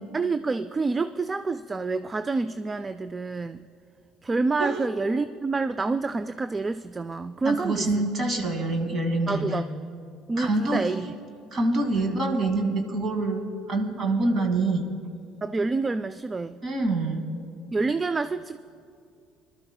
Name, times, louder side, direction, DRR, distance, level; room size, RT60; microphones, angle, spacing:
voice 1, 0.1-3.7 4.2-8.1 9.3-9.6 10.3-11.1 12.0-12.2 15.4-16.6 17.7-18.6, right 3 dB, 25° right, 13 dB, 0.3 m, -28 dB
voice 2, 7.4-9.6 10.4-10.9 11.5-14.9 16.6-17.2, right 2 dB, 40° right, 4 dB, 2.1 m, -26 dB
24.0 x 12.5 x 2.2 m, 2.4 s
hypercardioid pair, 75°, 0 cm